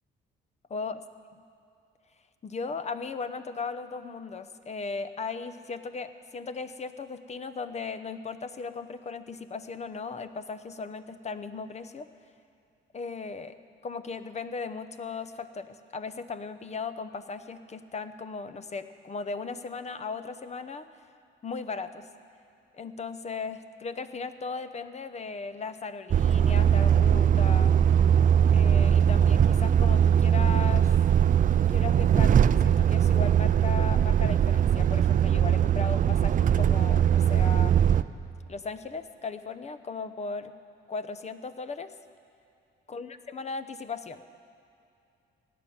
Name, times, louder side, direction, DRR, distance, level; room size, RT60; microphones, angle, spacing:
voice 1, 2.4-12.1 12.9-13.6 13.8-20.9 21.4-22.1 22.7-27.8 28.5-30.9 31.7-32.4 32.6-37.8 38.5-40.5 40.9-41.9 42.9-44.2, left 4 dB, 35° left, 11 dB, 0.8 m, -37 dB
Truck, 26.1-38.0, right 9 dB, 40° right, 0.5 m, -21 dB
17.5 x 9.3 x 7.2 m, 2.6 s
cardioid pair, 90°, 20 cm